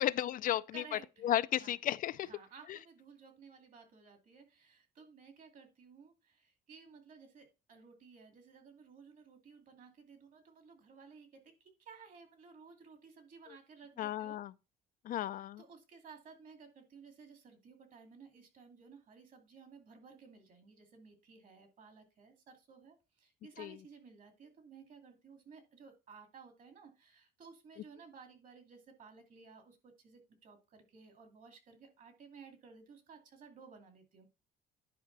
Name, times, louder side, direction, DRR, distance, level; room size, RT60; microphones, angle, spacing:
voice 1, 0.0-2.3 2.7-2.8 14.0-14.5 15.0-15.6 23.6-23.8, left 12 dB, 55° left, 0.4 m, -34 dB
voice 2, 0.7-1.2 1.6-1.8 2.2-14.4 15.3-34.3, right 5 dB, 55° right, 2.5 m, -56 dB
10.5 x 5.1 x 4.0 m
cardioid pair, 110°, 17 cm